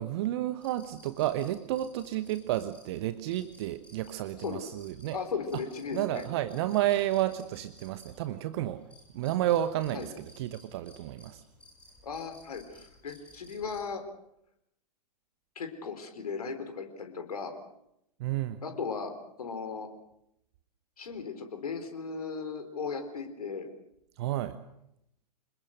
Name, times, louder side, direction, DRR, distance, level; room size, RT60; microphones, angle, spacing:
voice 1, 0.0-5.2 5.5-5.6 5.9-8.8 9.1-11.4 18.2-18.6 24.2-24.6, right 13 dB, 40° right, 13 dB, 1.0 m, -31 dB
sound 1, 0.6-13.9, left 1 dB, 5° left, 6.1 m, -57 dB
voice 2, 5.1-6.2 9.9-10.1 12.0-14.0 15.6-17.5 18.6-19.1 19.4-19.9 21.0-23.7, left 5 dB, 65° left, 7 dB, 4.2 m, -36 dB
26.5 x 21.0 x 6.6 m, 0.79 s
figure-of-eight pair, 110°, 21 cm